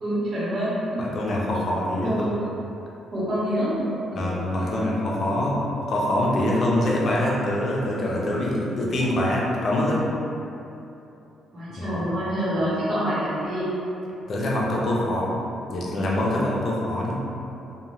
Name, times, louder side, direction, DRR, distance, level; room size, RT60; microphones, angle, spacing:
voice 1, 0.0-1.0 2.0-2.5 3.1-4.8 11.5-13.7, equal, 55° right, -10 dB, 1.0 m, -27 dB
voice 2, 1.0-2.4 4.1-10.0 11.7-12.1 14.3-15.3 15.7-17.2, left 1 dB, 55° left, -4 dB, 0.5 m, -24 dB
2.6 x 2.2 x 3.0 m, 2.9 s
cardioid pair, 90°, 0 cm